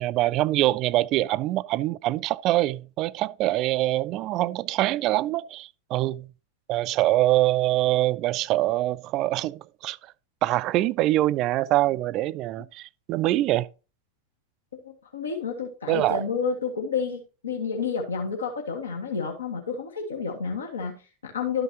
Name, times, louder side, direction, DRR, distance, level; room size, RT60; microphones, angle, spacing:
voice 1, 0.0-6.3 6.7-10.0 10.4-13.7 15.9-16.3, right 16 dB, 35° right, 0.4 m, -24 dB
voice 2, 14.7-21.6, left 5 dB, 70° left, 1.8 m, -30 dB
12.5 x 5.8 x 2.9 m
figure-of-eight pair, 90°, 0 cm